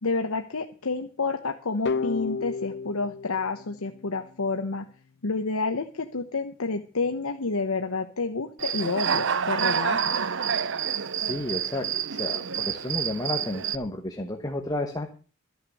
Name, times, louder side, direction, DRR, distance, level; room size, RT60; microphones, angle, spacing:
voice 1, 0.0-4.8 5.2-10.2, left 3 dB, 85° left, 5 dB, 1.0 m, -29 dB
sound 1, 1.9-4.7, left 4 dB, 55° left, 0.6 m, -33 dB
Human voice / Cricket, 8.6-13.8, right 7 dB, 60° right, 0.7 m, -28 dB
voice 2, 10.9-15.1, left 1 dB, 15° left, 4 dB, 1.2 m, -32 dB
13.5 x 6.6 x 8.3 m, 0.39 s
head